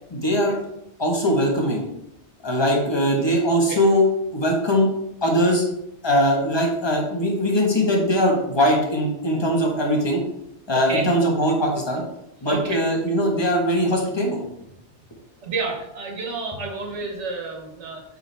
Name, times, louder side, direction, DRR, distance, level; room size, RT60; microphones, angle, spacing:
voice 1, 0.1-0.5 1.0-1.8 2.4-4.0 4.3-4.9 5.2-5.6 6.0-10.2 10.7-12.0 12.4-14.4, equal, 25° left, 0 dB, 1.3 m, -21 dB
voice 2, 3.5-3.8 10.9-11.1 12.4-13.0 15.4-18.0, right 3 dB, 80° right, 2 dB, 1.5 m, -30 dB
7.2 x 5.2 x 3.4 m, 0.81 s
omnidirectional pair, 1.2 m